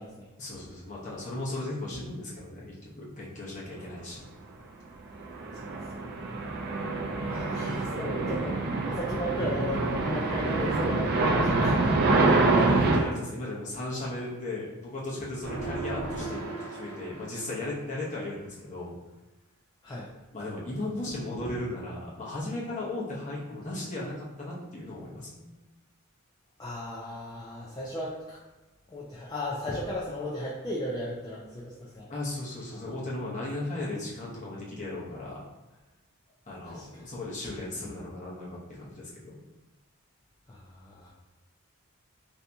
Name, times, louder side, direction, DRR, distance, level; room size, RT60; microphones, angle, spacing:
voice 1, 0.4-4.2 12.1-16.4 16.7-18.9 20.3-25.5 32.1-35.4 36.5-39.4, left 2 dB, 35° left, -6 dB, 0.8 m, -36 dB
sound 1, 5.2-13.0, right 3 dB, 45° right, 0.4 m, -26 dB
voice 2, 7.2-11.9 15.7-15.8 19.8-20.1 26.6-28.4 28.9-32.1 32.7-32.9 36.6-37.0 40.5-41.1, equal, 20° left, -6 dB, 0.4 m, -35 dB
sound 2, 15.4-17.8, right 3 dB, 85° right, 0.7 m, -37 dB
2.7 x 2.7 x 3.4 m, 1.1 s
head